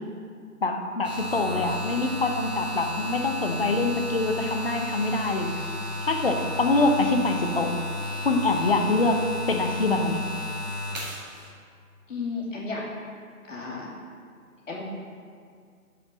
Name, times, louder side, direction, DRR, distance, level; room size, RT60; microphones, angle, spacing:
voice 1, 0.6-5.6 6.0-7.8 8.2-10.2, left 2 dB, 40° left, 3 dB, 0.8 m, -25 dB
sound 1, 1.0-11.5, left 1 dB, 25° right, 1.7 m, -33 dB
voice 2, 12.1-12.8 13.5-13.9 14.7-14.8, left 4 dB, 55° left, -4 dB, 2.5 m, -33 dB
8.0 x 5.1 x 7.2 m, 2.1 s
figure-of-eight pair, 150°, 45 cm